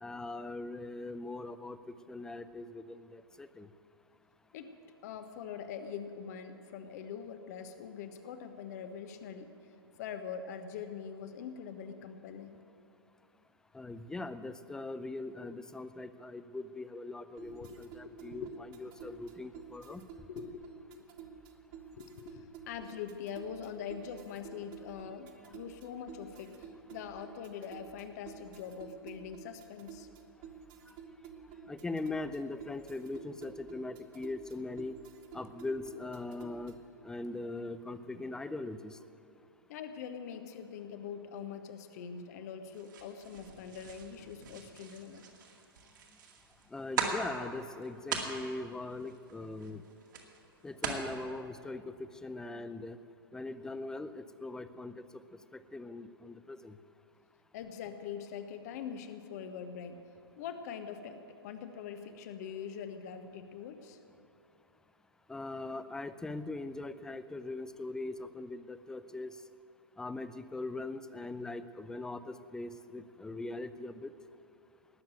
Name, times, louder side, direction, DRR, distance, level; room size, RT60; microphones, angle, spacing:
voice 1, 0.0-1.8 2.1-3.7 13.7-20.0 25.4-25.5 30.9-31.0 31.7-34.9 35.3-36.8 37.0-39.0 46.7-49.8 50.6-53.0 53.3-55.2 55.5-56.8 65.3-69.3 70.0-74.1, left 2 dB, 5° left, 12 dB, 0.5 m, -41 dB
voice 2, 5.0-9.5 10.0-12.6 17.6-17.8 18.0-18.5 19.0-19.2 19.9-20.0 20.3-21.1 22.0-30.1 39.7-45.3 57.5-60.0 60.4-64.0, left 7 dB, 40° left, 8 dB, 1.2 m, -43 dB
sound 1, 17.4-36.9, right 7 dB, 30° right, 1.2 m, -51 dB
sound 2, 42.7-51.1, right 5 dB, 55° right, 2.2 m, -41 dB
19.0 x 7.3 x 9.1 m, 2.7 s
figure-of-eight pair, 110°, 13 cm